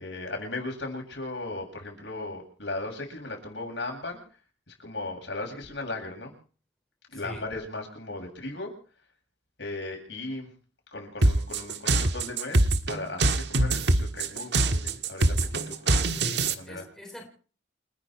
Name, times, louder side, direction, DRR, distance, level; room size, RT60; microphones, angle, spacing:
voice 1, 0.0-4.2 4.7-6.3 7.1-8.7 9.6-10.5 10.9-16.9, left 2 dB, 70° left, 7.8 m, -37 dB
voice 2, 7.1-7.4 16.1-17.3, equal, ahead, 3.9 m, -42 dB
sound 1, 11.2-16.5, right 2 dB, 65° right, 1.6 m, -23 dB
29.5 x 10.0 x 4.6 m
head